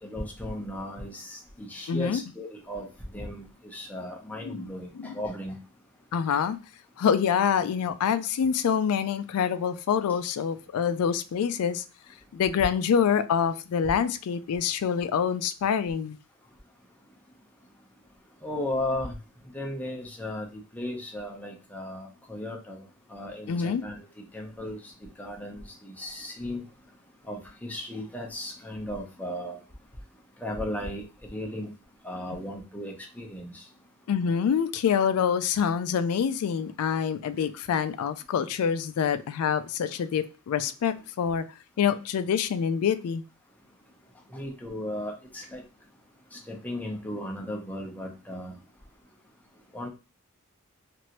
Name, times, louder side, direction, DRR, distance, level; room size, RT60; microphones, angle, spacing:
voice 1, 0.0-2.9 3.1-5.6 18.4-19.1 19.5-22.8 23.1-24.0 24.3-24.9 25.2-26.6 27.3-29.6 30.4-31.0 31.3-31.7 32.0-33.6 44.3-45.6 46.3-48.6 49.7-49.9, left 1 dB, 5° left, 0.7 m, -36 dB
voice 2, 1.9-2.2 4.4-4.7 5.0-5.2 6.1-6.6 7.0-11.8 12.3-16.2 23.5-23.8 34.1-41.4 41.8-43.2, left 7 dB, 90° left, 0.3 m, -26 dB
3.1 x 2.5 x 2.8 m
head